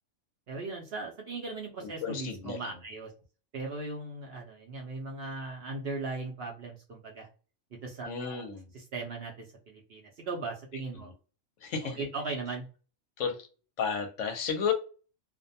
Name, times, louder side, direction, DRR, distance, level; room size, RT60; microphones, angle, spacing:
voice 1, 0.5-3.1 3.5-7.3 7.8-8.5 8.7-11.1 11.8-12.6, right 3 dB, 60° right, 0.7 m, -38 dB
voice 2, 1.8-2.6 8.0-8.7 11.0-11.1 11.6-12.0 13.2-13.4 13.8-14.7, left 6 dB, 70° left, 0.9 m, -32 dB
2.4 x 2.1 x 2.6 m
omnidirectional pair, 1.4 m